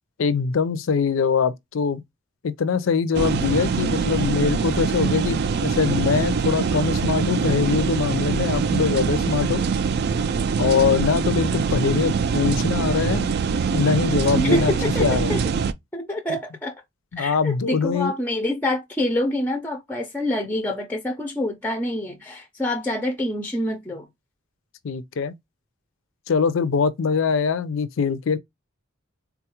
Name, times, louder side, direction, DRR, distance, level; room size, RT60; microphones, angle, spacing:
voice 1, 0.2-2.0 2.4-9.6 10.6-13.3 13.7-14.7 15.0-15.3 17.1-18.1 24.8-25.3 26.3-28.4, left 6 dB, 75° left, 0.4 m, -23 dB
sound 1, 3.1-15.7, right 5 dB, 55° right, 0.3 m, -23 dB
voice 2, 14.4-15.4 15.9-16.8 17.2-24.1, left 1 dB, 10° left, 0.4 m, -26 dB
3.7 x 2.3 x 2.8 m
head